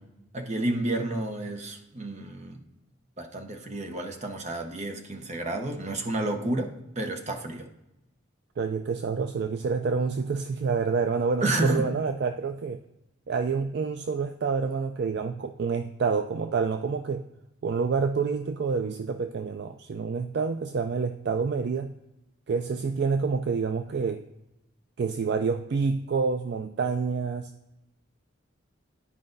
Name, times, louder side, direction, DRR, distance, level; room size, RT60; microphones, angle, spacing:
voice 1, 0.3-2.6 3.2-7.7 11.4-11.9, right 2 dB, 35° right, 5 dB, 0.8 m, -30 dB
voice 2, 8.6-12.8 13.3-17.3 17.6-21.9 22.5-24.2 25.0-27.5, right 5 dB, 55° right, 7 dB, 0.3 m, -28 dB
11.5 x 4.9 x 2.6 m, 0.92 s
head